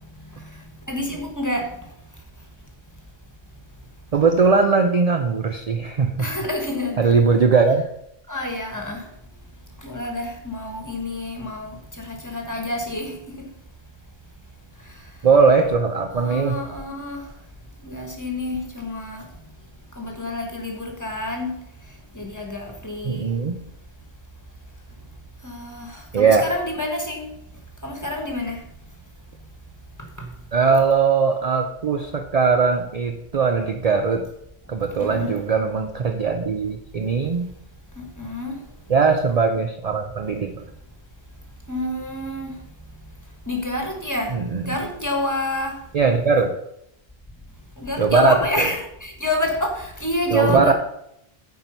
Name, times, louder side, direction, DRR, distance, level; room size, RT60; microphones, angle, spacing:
voice 1, 0.9-1.8 6.2-7.1 8.3-9.1 9.8-13.5 14.8-15.0 16.1-17.3 17.8-19.3 19.9-21.5 22.1-23.3 25.4-27.3 27.8-28.7 30.2-30.3 35.0-35.4 38.0-38.6 41.7-42.6 43.5-44.4 44.6-45.8 47.8-50.7, left 1 dB, 15° left, 1 dB, 1.4 m, -28 dB
voice 2, 4.1-6.2 7.0-7.8 15.2-16.6 23.0-23.6 26.1-26.5 30.5-34.3 34.7-37.5 38.9-40.6 44.3-44.7 45.9-46.6 48.0-48.7 50.3-50.7, right 5 dB, 45° right, 5 dB, 0.6 m, -20 dB
9.3 x 4.5 x 5.5 m, 0.78 s
omnidirectional pair, 1.1 m